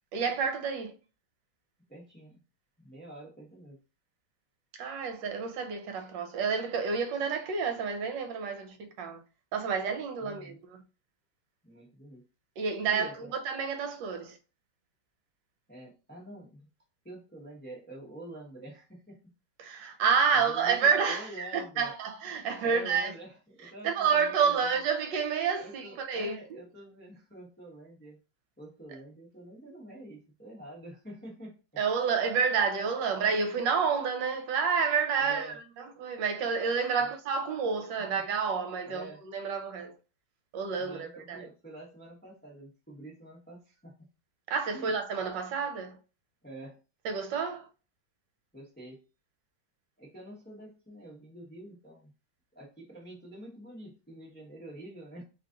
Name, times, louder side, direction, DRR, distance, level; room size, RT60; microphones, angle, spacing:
voice 1, 0.1-0.9 4.7-9.2 9.5-10.8 12.6-14.4 19.6-23.1 23.8-26.6 31.8-40.0 40.5-41.5 44.5-46.0 47.0-47.7, right 6 dB, 75° right, 1.3 m, -29 dB
voice 2, 1.9-2.4 2.8-3.8 10.2-10.6 11.6-12.2 12.9-13.3 15.7-16.7 17.0-19.2 19.9-20.0 20.3-20.8 21.1-21.9 22.6-24.7 25.6-28.2 28.6-31.6 35.2-35.6 36.9-37.1 38.8-39.2 40.8-44.1 44.7-44.9 46.4-46.8 48.5-49.0 50.0-52.1 52.5-55.2, right 1 dB, 10° left, 0.5 m, -47 dB
3.1 x 2.4 x 3.7 m
omnidirectional pair, 2.1 m